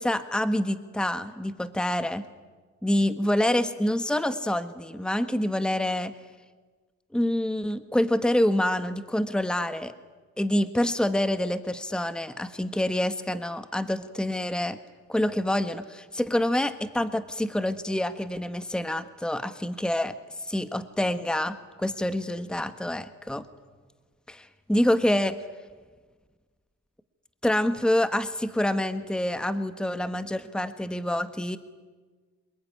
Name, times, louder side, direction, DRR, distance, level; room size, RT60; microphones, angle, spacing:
voice 1, 0.0-2.2 2.8-6.1 7.1-9.9 10.4-14.8 15.1-20.1 20.4-23.4 24.3-25.4 27.4-31.6, left 1 dB, 5° left, 11 dB, 1.5 m, -27 dB
27.5 x 21.0 x 9.9 m, 1.4 s
cardioid pair, 90°, 30 cm